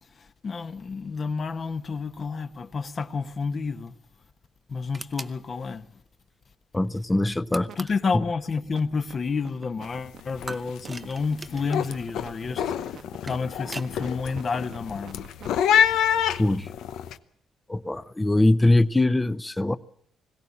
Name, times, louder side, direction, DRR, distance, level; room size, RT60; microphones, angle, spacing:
voice 1, 0.1-3.9 4.7-6.0 7.8-15.3, left 4 dB, 40° left, 1.2 m, -30 dB
sound 1, 4.9-5.4 7.5-8.1 10.5-11.9 13.0-14.0, right 2 dB, 20° right, 0.8 m, -40 dB
voice 2, 6.7-7.7 16.4-16.7 17.7-19.8, left 2 dB, 15° left, 0.8 m, -22 dB
sound 2, 7.4-7.8 8.0-16.0, right 8 dB, 65° right, 1.2 m, -45 dB
sound 3, 9.8-10.1 10.3-10.8 11.2-17.1, left 9 dB, 80° left, 0.9 m, -26 dB
21.5 x 17.0 x 8.5 m
cardioid pair, 90°, 0 cm